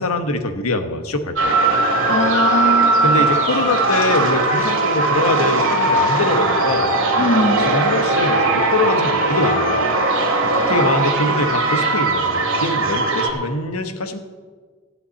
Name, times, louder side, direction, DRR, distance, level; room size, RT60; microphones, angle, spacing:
voice 1, 0.0-1.5 3.0-6.9 7.6-9.9 10.7-14.2, left 2 dB, 85° left, 1.3 m, -23 dB
sound 1, 1.4-13.3, right 2 dB, 65° right, 2.7 m, -19 dB
voice 2, 2.1-3.2 7.2-7.7 10.4-10.7, left 2 dB, 35° left, 0.5 m, -21 dB
14.5 x 5.8 x 9.5 m
head